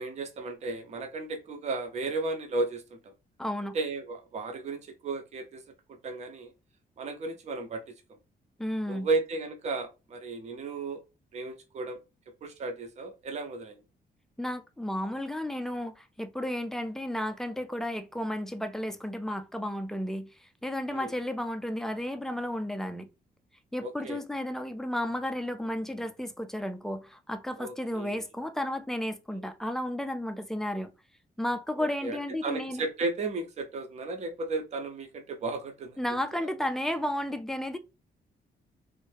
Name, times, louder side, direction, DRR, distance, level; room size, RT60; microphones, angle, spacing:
voice 1, 0.0-2.8 3.7-5.6 5.9-6.5 7.0-7.8 8.9-11.0 11.3-12.0 12.4-13.8 20.9-21.1 23.8-24.2 27.6-28.1 32.0-36.0, right 3 dB, 40° right, 0.6 m, -34 dB
voice 2, 3.4-3.8 8.6-9.1 14.4-20.3 20.6-23.1 23.7-30.9 31.4-32.8 36.0-37.8, left 1 dB, 5° left, 0.3 m, -33 dB
3.2 x 2.6 x 3.3 m
cardioid pair, 155°, 17 cm